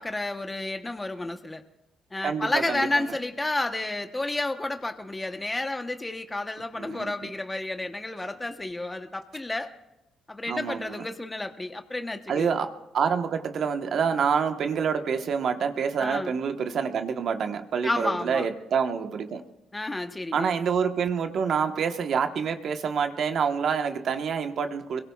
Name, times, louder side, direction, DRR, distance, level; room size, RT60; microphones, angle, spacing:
voice 1, 0.0-1.6 2.1-9.7 10.3-12.5 16.0-16.3 17.8-18.5 19.7-20.5, left 2 dB, 15° left, 1.0 m, -31 dB
voice 2, 2.2-3.2 6.8-7.1 10.5-11.0 12.3-19.4 20.3-25.0, right 6 dB, 65° right, 1.2 m, -27 dB
25.5 x 22.5 x 2.4 m
cardioid pair, 90°, 0 cm